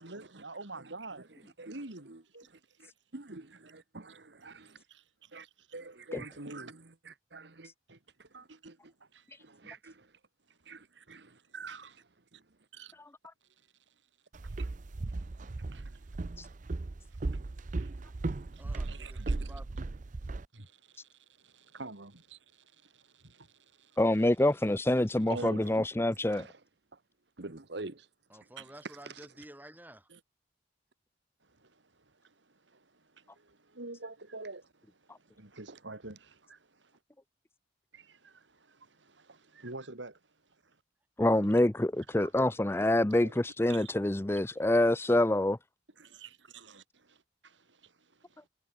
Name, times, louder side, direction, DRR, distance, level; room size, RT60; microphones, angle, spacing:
voice 1, 0.0-1.3 1.7-2.5 3.5-3.6 4.9-5.8 6.2-6.7 7.9-8.0 8.5-8.7 9.0-9.4 10.5-10.6 10.9-11.9 12.7-12.9 14.5-14.7 15.7-16.1 17.1-17.4 17.8-17.9 18.5-19.5 20.5-24.0 25.2-25.8 26.4-26.5 28.6-28.7 30.1-30.2 31.4-37.0 37.9-40.2 40.6-40.8 41.3-41.5 42.0-42.3 43.2-43.4 43.7-43.9 44.5-44.6 46.0-48.4, right 3 dB, 85° right, 3.0 m, -49 dB
voice 2, 2.8-4.8 5.3-5.5 5.7-6.7 7.1-7.7 8.2-8.9 9.4-10.1 10.7-12.0 25.3-25.9 26.3-26.6 27.4-28.1 35.7-35.8, right 3 dB, 65° right, 1.3 m, -45 dB
Walk footsteps, 14.3-20.4, right 2 dB, 45° right, 0.6 m, -36 dB
voice 3, 18.6-19.7 20.2-20.3 28.3-30.1, right 1 dB, 10° right, 6.5 m, -51 dB
voice 4, 24.0-26.4 41.2-45.6, left 1 dB, 15° left, 0.6 m, -26 dB
head